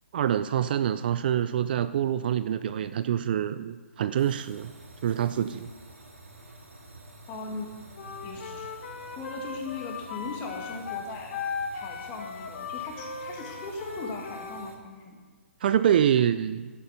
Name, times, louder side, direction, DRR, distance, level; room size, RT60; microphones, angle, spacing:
voice 1, 0.1-4.7 5.0-5.7 15.6-16.7, right 10 dB, 45° right, 13 dB, 0.4 m, -26 dB
sound 1, 4.2-14.8, right 2 dB, 85° right, 2.2 m, -49 dB
voice 2, 7.3-7.7 8.2-8.7 9.2-11.4 11.7-15.2, left 4 dB, 25° left, 1 dB, 2.0 m, -39 dB
Wind instrument woodwind instrument, 7.9-14.7, left 5 dB, 55° left, 1.3 m, -37 dB
11.5 x 8.6 x 5.7 m, 1.5 s
hypercardioid pair, 140°, 7 cm